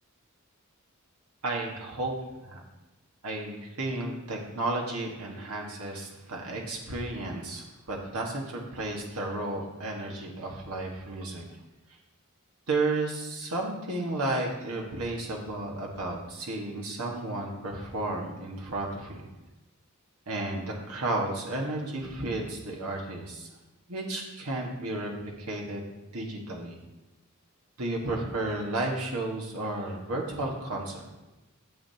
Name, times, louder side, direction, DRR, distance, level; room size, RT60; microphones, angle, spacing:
voice 1, 1.4-2.1 2.5-2.6 3.2-11.4 12.7-19.3 20.3-23.5 23.9-25.1 25.4-25.8 26.1-26.8 27.8-31.1, right 2 dB, 90° right, -1 dB, 1.5 m, -33 dB
12.5 x 7.3 x 2.8 m, 1.0 s
head